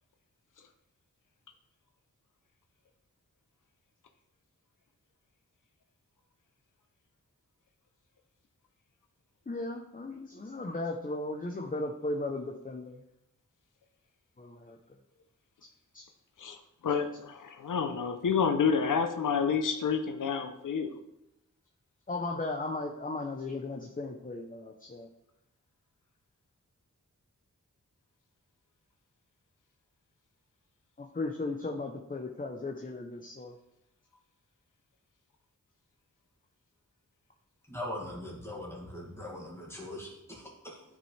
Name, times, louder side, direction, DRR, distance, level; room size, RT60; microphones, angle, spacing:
voice 1, 9.5-13.0 14.4-14.8 15.9-16.0 22.1-25.1 31.0-33.5, left 2 dB, 25° left, 1 dB, 0.7 m, -36 dB
voice 2, 16.8-21.0, left 6 dB, 90° left, 7 dB, 0.7 m, -29 dB
voice 3, 37.7-40.8, left 1 dB, 10° left, -2 dB, 2.1 m, -41 dB
12.5 x 5.3 x 3.3 m, 0.86 s
wide cardioid pair, 110°, 31 cm